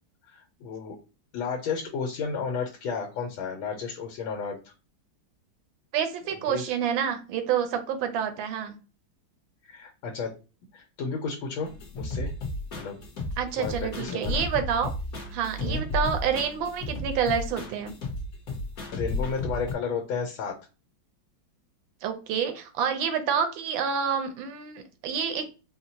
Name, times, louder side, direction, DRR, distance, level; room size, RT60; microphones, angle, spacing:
voice 1, 0.3-1.0 1.3-4.7 6.5-6.7 9.6-10.4 10.7-12.3 12.7-13.0 13.6-14.4 15.6-15.8 18.9-20.6, left 5 dB, 85° left, 1 dB, 1.5 m, -32 dB
voice 2, 5.9-8.8 13.4-14.9 15.3-17.9 22.0-25.4, right 7 dB, 75° right, 7 dB, 1.4 m, -28 dB
sound 1, 11.6-19.7, left 2 dB, 50° left, 1.3 m, -33 dB
4.4 x 2.1 x 2.7 m, 0.32 s
omnidirectional pair, 2.2 m